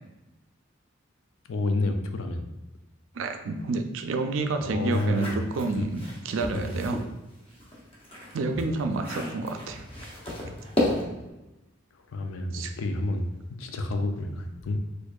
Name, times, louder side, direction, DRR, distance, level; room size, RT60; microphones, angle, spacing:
voice 1, 1.5-2.4 4.6-5.4 5.8-5.9 6.5-6.8 12.1-13.3 13.6-14.8, left 2 dB, 75° left, 6 dB, 0.4 m, -29 dB
voice 2, 3.1-7.0 8.3-9.8 12.5-12.7, right 3 dB, 70° right, 6 dB, 0.4 m, -29 dB
sound 1, 4.8-7.1 7.5-11.3, left 1 dB, 25° left, 0.7 m, -33 dB
4.4 x 2.5 x 2.3 m, 1.0 s
head